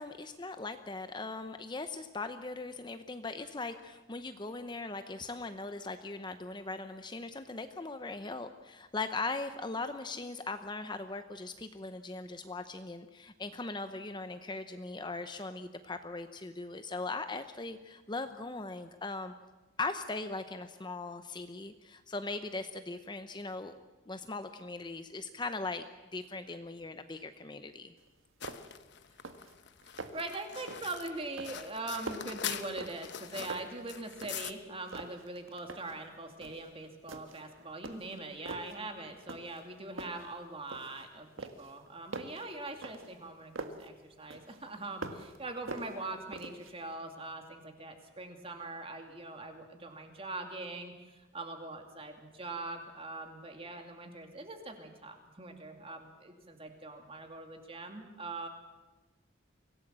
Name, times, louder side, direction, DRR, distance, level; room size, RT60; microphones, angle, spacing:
voice 1, 0.0-19.3 19.8-23.7 24.1-25.8 26.1-27.9, left 3 dB, 25° left, 9 dB, 0.8 m, -39 dB
sound 1, 28.0-28.1 28.4-28.8 29.1-29.5 29.8-30.3 30.7-31.0 31.4-33.2 33.5-34.6 34.9-36.0 36.4-36.7 37.1-37.5 37.8-38.8 39.3-39.7 40.0-41.1 41.4-43.9 44.3-45.4 45.7-46.7, right 2 dB, 85° right, 1.6 m, -44 dB
sound 2, 28.4-34.5, left 9 dB, 60° left, 1.0 m, -43 dB
voice 2, 29.9-58.5, right 2 dB, 30° right, 5 dB, 2.5 m, -42 dB
24.5 x 17.0 x 7.5 m, 1.2 s
head